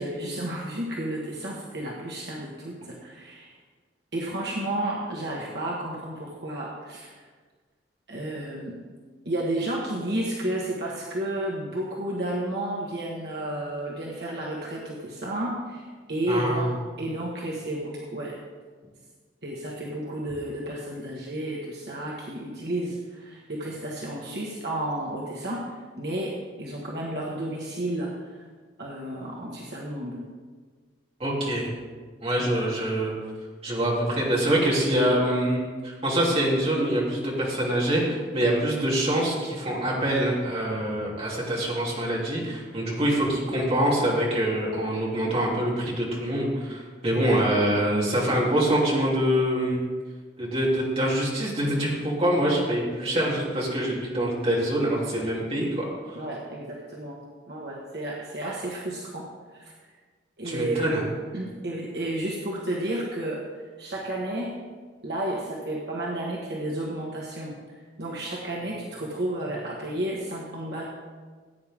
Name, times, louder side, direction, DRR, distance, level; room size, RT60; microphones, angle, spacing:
voice 1, 0.0-3.5 4.1-7.2 8.1-8.8 9.2-15.8 16.1-16.7 17.0-18.4 19.4-25.6 26.0-28.1 28.8-30.2 32.4-32.5 47.1-47.4 56.1-57.2 57.5-59.3 59.5-59.7 60.4-60.9 61.3-63.4 63.8-64.5 65.0-67.5 68.0-70.8, right 1 dB, 60° right, -4 dB, 1.5 m, -32 dB
voice 2, 16.3-16.7 31.2-31.7 32.2-33.1 33.6-35.6 35.8-49.8 50.4-56.2 60.4-61.0, right 1 dB, 35° right, -5 dB, 3.0 m, -25 dB
16.0 x 9.1 x 3.7 m, 1.5 s
head